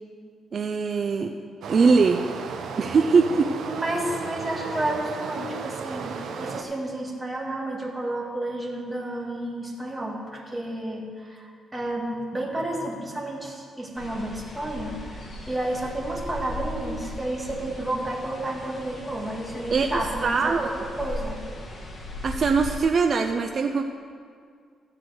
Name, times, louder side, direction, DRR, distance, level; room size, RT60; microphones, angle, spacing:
voice 1, 0.5-1.3 1.7-2.2 2.8-3.5 19.7-20.7 22.2-23.8, right 4 dB, 45° right, 5 dB, 0.5 m, -21 dB
Stream, 1.6-6.6, right 5 dB, 75° right, 0.8 m, -34 dB
voice 2, 3.7-21.4, right 1 dB, 15° right, -1 dB, 1.9 m, -31 dB
sound 1, 14.0-22.8, left 1 dB, 35° left, 1.6 m, -38 dB
13.5 x 4.9 x 7.8 m, 2.1 s
cardioid pair, 105°, 0 cm